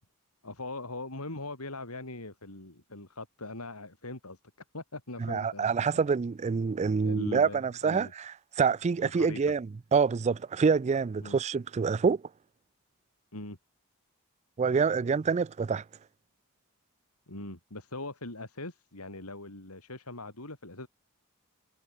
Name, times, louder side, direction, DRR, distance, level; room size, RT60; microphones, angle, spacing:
voice 1, 0.4-4.4 4.7-6.0 7.0-8.1 9.0-9.4 11.2-11.4 13.3-13.6 17.3-20.9, left 2 dB, 85° left, 5.3 m, -41 dB
voice 2, 5.2-8.3 8.6-12.2 14.6-15.8, right 5 dB, 30° right, 0.3 m, -26 dB
head